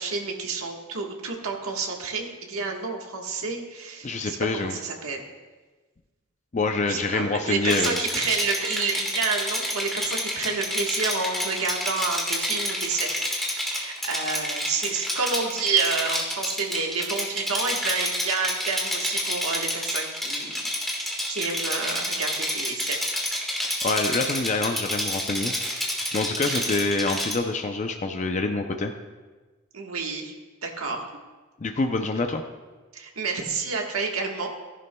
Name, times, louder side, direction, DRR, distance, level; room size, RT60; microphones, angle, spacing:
voice 1, 0.0-5.2 6.8-23.0 26.5-26.6 29.7-30.3 30.6-31.0 32.9-34.5, right 4 dB, 85° right, 1 dB, 1.4 m, -29 dB
voice 2, 4.0-4.7 6.5-8.0 23.6-28.9 31.6-32.4, left 3 dB, 35° left, 5 dB, 0.5 m, -26 dB
Rattle, 7.6-27.3, left 1 dB, ahead, 1.5 m, -29 dB
15.0 x 11.0 x 2.3 m, 1.3 s
head